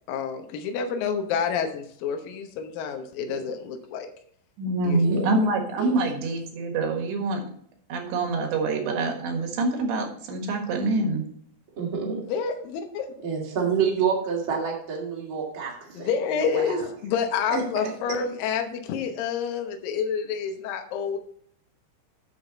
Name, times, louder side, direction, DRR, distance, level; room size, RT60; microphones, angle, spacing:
voice 1, 0.1-4.1 4.8-5.0 12.3-13.1 15.9-21.2, left 6 dB, 75° left, 4 dB, 2.1 m, -28 dB
voice 2, 4.6-7.5 7.9-11.2, right 2 dB, 75° right, 4 dB, 3.8 m, -25 dB
voice 3, 11.8-12.2 13.2-16.1 16.4-16.8 17.5-17.9, right 6 dB, 40° right, -3 dB, 2.1 m, -28 dB
9.0 x 7.2 x 4.0 m, 0.62 s
omnidirectional pair, 5.3 m